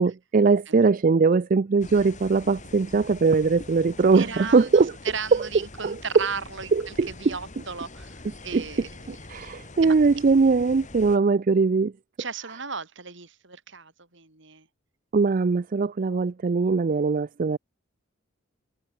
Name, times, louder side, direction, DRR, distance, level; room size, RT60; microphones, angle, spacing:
voice 1, 0.0-4.9 5.3-5.5 5.8-6.3 6.7-7.3 8.5-11.9 15.1-17.6, right 4 dB, 40° right, 0.4 m, -21 dB
sound 1, 1.8-11.2, left 2 dB, 35° left, 2.2 m, -44 dB
voice 2, 4.1-8.9 9.8-9.9 12.2-14.7, right 5 dB, 65° right, 4.5 m, -36 dB
head